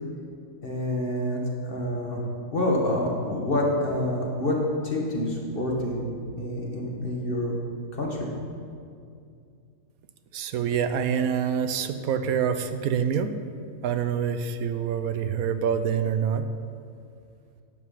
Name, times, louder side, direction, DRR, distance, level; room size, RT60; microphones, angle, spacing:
voice 1, 0.6-2.2 2.5-4.6 4.8-7.6 7.9-8.3, left 1 dB, 40° left, -2 dB, 1.8 m, -27 dB
voice 2, 10.3-13.4 13.8-16.5, right 7 dB, 80° right, 10 dB, 1.1 m, -26 dB
11.0 x 8.5 x 5.6 m, 2.4 s
omnidirectional pair, 1.5 m